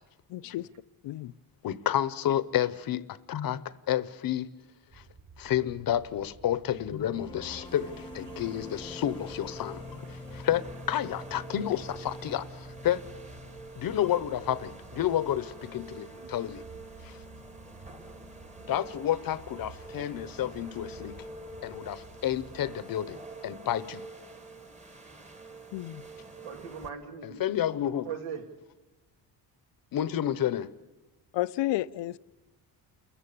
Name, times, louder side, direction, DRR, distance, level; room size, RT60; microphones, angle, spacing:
voice 1, 0.3-0.7 1.0-1.3 25.7-26.0 31.3-32.2, left 16 dB, 85° left, 0.7 m, -31 dB
voice 2, 1.6-3.6 3.9-4.5 4.9-5.0 5.4-13.0 13.7-16.6 17.0-17.2 18.6-21.1 21.6-24.0 27.2-28.1 29.9-30.7, left 11 dB, 55° left, 0.9 m, -30 dB
sound 1, 4.9-22.7, right 4 dB, 50° right, 4.4 m, -52 dB
sound 2, 7.1-14.2, left 3 dB, 10° left, 0.8 m, -46 dB
sound 3, 7.6-26.9, right 2 dB, 15° right, 1.3 m, -47 dB
voice 3, 10.0-10.4 16.1-16.3 26.4-27.4 28.0-28.4, right 7 dB, 85° right, 2.5 m, -40 dB
29.0 x 14.5 x 8.5 m
cardioid pair, 155°, 42 cm